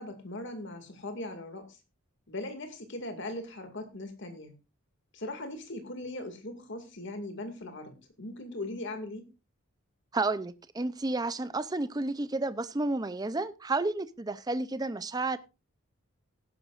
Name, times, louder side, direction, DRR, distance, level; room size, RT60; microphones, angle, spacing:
voice 1, 0.0-1.8 2.3-4.5 5.1-9.3, left 2 dB, 55° left, 6 dB, 2.2 m, -39 dB
voice 2, 10.1-15.4, right 2 dB, 15° right, 15 dB, 0.5 m, -31 dB
17.5 x 11.0 x 2.5 m, 0.28 s
head